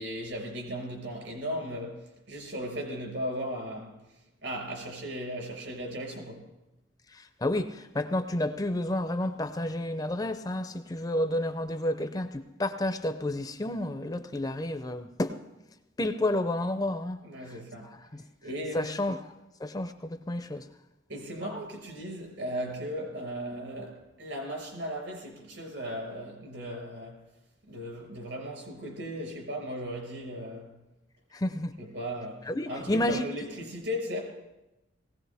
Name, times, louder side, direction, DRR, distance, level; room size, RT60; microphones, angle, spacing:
voice 1, 0.0-4.0 4.4-6.5 17.2-17.9 18.4-19.0 21.1-27.2 27.7-30.8 31.8-34.2, equal, 70° right, 4.9 m, -37 dB
voice 2, 7.1-15.4 16.0-17.2 17.8-18.2 18.7-19.3 19.6-20.7 31.3-31.7 32.5-33.2, left 1 dB, 20° left, 0.5 m, -30 dB
19.0 x 16.5 x 3.4 m
head